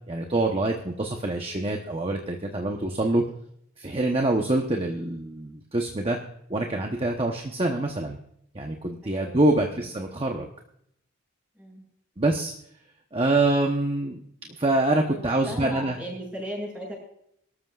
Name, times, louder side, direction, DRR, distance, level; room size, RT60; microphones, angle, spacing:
voice 1, 0.1-3.2 3.8-6.2 6.5-8.2 8.5-10.5 12.2-12.5 13.1-14.2 14.6-16.0, right 2 dB, 25° right, 2 dB, 0.9 m, -25 dB
voice 2, 9.0-9.7 11.6-11.8 15.2-16.9, right 1 dB, 5° right, -2 dB, 6.6 m, -37 dB
23.0 x 13.0 x 2.4 m, 0.72 s
head